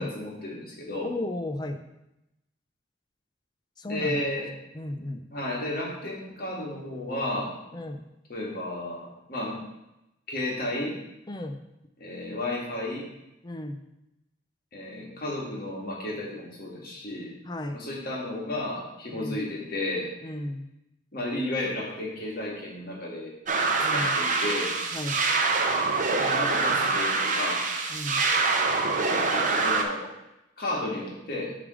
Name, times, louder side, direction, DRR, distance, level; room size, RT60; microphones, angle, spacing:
voice 1, 0.0-1.1 3.9-4.5 5.3-7.5 8.3-9.6 10.3-11.0 12.0-13.1 14.7-17.3 17.7-20.1 21.1-23.3 23.9-24.7 26.2-27.6 29.0-30.1 30.6-31.6, left 1 dB, 50° left, -3 dB, 1.9 m, -33 dB
voice 2, 1.0-1.8 3.8-4.2 4.7-5.2 7.7-8.0 11.3-11.6 13.4-13.8 17.5-17.8 19.1-19.4 20.2-20.7 23.8-24.1 24.9-25.2 27.9-28.2, left 1 dB, 20° left, 6 dB, 0.5 m, -34 dB
sound 1, 23.5-29.8, right 3 dB, 40° right, 0.7 m, -25 dB
7.2 x 3.4 x 6.2 m, 0.90 s
head